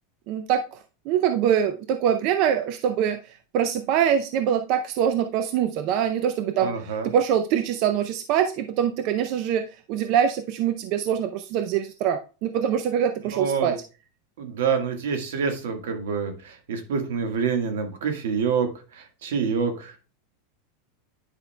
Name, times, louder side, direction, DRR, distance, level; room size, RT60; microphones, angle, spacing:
voice 1, 0.3-13.8, right 9 dB, 45° right, 9 dB, 0.5 m, -24 dB
voice 2, 6.6-7.1 13.3-13.8 14.4-20.0, right 6 dB, 85° right, 6 dB, 1.6 m, -27 dB
9.8 x 5.3 x 2.2 m, 0.33 s
supercardioid pair, 165°, 0 cm